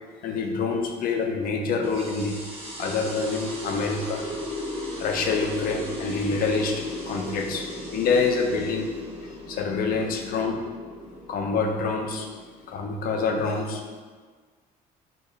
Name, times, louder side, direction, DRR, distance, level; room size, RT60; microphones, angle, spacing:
voice 1, 0.2-2.4 2.8-4.3 5.0-8.9 9.2-10.6 11.3-12.3 12.7-13.8, left 4 dB, 60° left, 2 dB, 0.5 m, -26 dB
sound 1, 1.8-12.9, equal, 35° right, 1.0 m, -37 dB
2.8 x 2.5 x 3.8 m, 1.5 s
cardioid pair, 110°, 17 cm